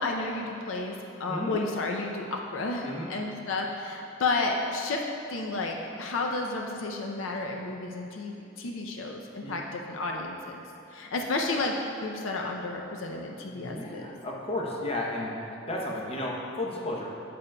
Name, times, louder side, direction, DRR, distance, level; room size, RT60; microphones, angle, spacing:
voice 1, 0.0-5.0 5.3-10.6 10.9-11.7 12.0-14.1, left 3 dB, 70° left, 1 dB, 0.5 m, -32 dB
voice 2, 2.8-3.1 9.4-9.6 13.5-17.1, left 1 dB, 30° left, -1 dB, 0.7 m, -33 dB
8.6 x 7.6 x 2.2 m, 2.8 s
head